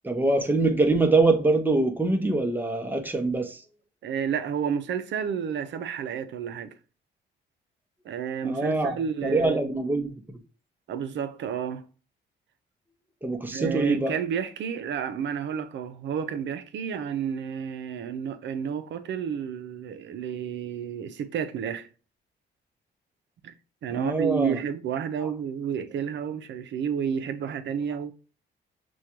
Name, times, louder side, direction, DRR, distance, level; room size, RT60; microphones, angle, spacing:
voice 1, 0.0-3.6 8.4-9.0 9.2-10.1 13.2-14.1 23.9-24.6 25.2-25.3, right 2 dB, 10° right, 0.8 m, -24 dB
voice 2, 4.0-6.8 8.0-9.7 10.9-11.8 13.5-21.9 23.4-23.5 23.8-28.1, right 7 dB, 65° right, 0.6 m, -31 dB
6.2 x 2.3 x 2.9 m
cardioid pair, 90°, 20 cm